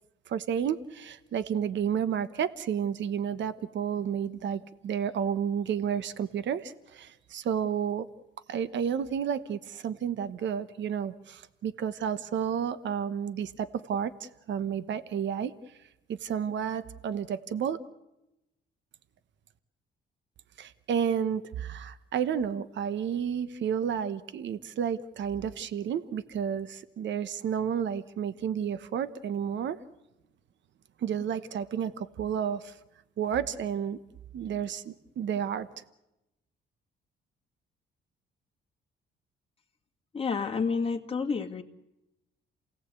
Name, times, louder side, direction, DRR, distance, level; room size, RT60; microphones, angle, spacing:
voice 1, 0.3-8.1 8.5-15.5 16.2-17.8 20.6-29.8 31.0-32.8 33.2-34.0 34.3-35.7, right 8 dB, 65° right, 14 dB, 1.1 m, -31 dB
voice 2, 40.1-41.6, left 5 dB, 30° left, 2 dB, 2.0 m, -29 dB
28.0 x 17.5 x 8.3 m, 0.92 s
cardioid pair, 90°, 20 cm